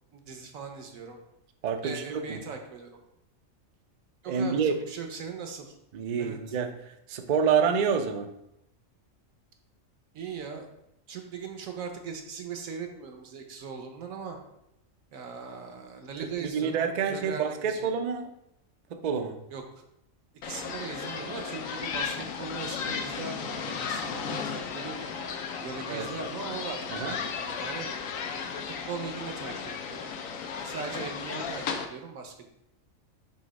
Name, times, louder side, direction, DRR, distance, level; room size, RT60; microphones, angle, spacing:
voice 1, 0.1-1.2 1.8-3.0 4.2-5.7 6.2-6.6 10.1-10.7 11.1-14.4 15.1-16.7 17.1-17.9 19.5-19.6 20.4-25.1 25.6-27.9 28.9-30.1 30.5-32.5, right 5 dB, 80° right, 4 dB, 1.3 m, -39 dB
voice 2, 1.6-2.4 4.3-4.8 5.9-8.3 16.4-18.3 18.9-19.4 25.9-26.1 26.9-27.2, right 6 dB, 65° right, 7 dB, 0.4 m, -28 dB
sound 1, 20.4-31.9, left 6 dB, 80° left, 1.1 m, -35 dB
6.5 x 2.9 x 5.2 m, 0.82 s
omnidirectional pair, 1.4 m